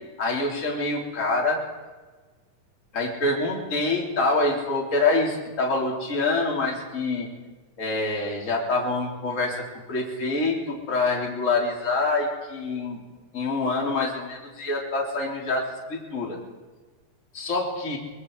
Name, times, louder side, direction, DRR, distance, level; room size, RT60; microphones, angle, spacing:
voice 1, 0.2-1.6 2.9-7.3 7.8-13.0 13.3-16.4 17.3-18.0, left 3 dB, 20° left, -2 dB, 3.9 m, -26 dB
25.5 x 21.0 x 4.9 m, 1.3 s
omnidirectional pair, 3.8 m